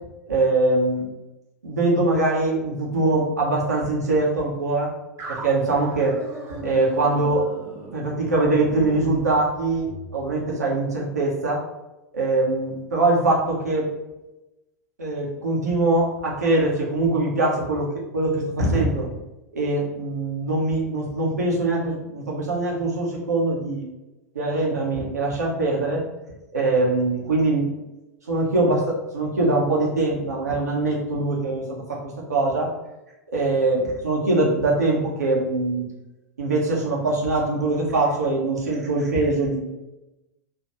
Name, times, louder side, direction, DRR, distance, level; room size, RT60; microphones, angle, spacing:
voice 1, 0.3-1.1 1.6-4.9 5.3-6.2 6.6-7.5 7.9-11.6 12.1-13.9 15.0-17.9 18.1-19.1 19.5-23.8 24.3-26.0 26.5-27.7 28.3-32.7 33.3-35.9 36.4-39.6, right 2 dB, 75° right, -3 dB, 1.2 m, -22 dB
sound 1, 5.2-10.1, right 2 dB, 35° right, 1.1 m, -38 dB
4.5 x 3.1 x 3.0 m, 0.98 s
figure-of-eight pair, 90°, 9 cm